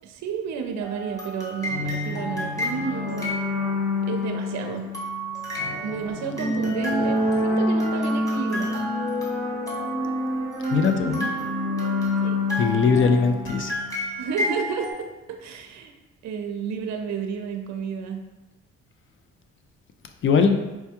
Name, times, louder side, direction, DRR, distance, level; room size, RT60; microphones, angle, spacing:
voice 1, 0.0-3.4 4.1-4.9 5.8-8.9 12.2-12.4 14.2-15.9 16.2-18.2, right 6 dB, 65° right, 4 dB, 0.5 m, -31 dB
sound 1, 0.8-4.2 4.9-14.9, equal, 10° left, 1.0 m, -33 dB
sound 2, 1.6-14.1, left 2 dB, 65° left, 1.3 m, -28 dB
voice 2, 10.7-11.3 12.6-13.8 20.2-20.5, left 5 dB, 45° left, 6 dB, 0.4 m, -20 dB
4.4 x 2.2 x 2.9 m, 1.1 s
cardioid pair, 90°, 30 cm